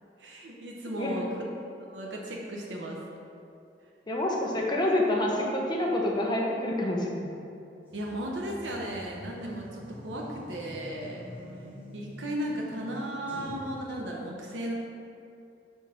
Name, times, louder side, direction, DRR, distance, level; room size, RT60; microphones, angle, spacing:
voice 1, 0.2-1.4 1.9-3.0 7.9-11.3 11.9-14.7, right 1 dB, 85° right, -2 dB, 0.8 m, -35 dB
voice 2, 4.1-7.3, left 1 dB, 25° left, -2 dB, 0.9 m, -27 dB
sound 1, 7.9-13.7, left 1 dB, 10° right, 1.5 m, -45 dB
4.9 x 4.5 x 5.6 m, 2.7 s
head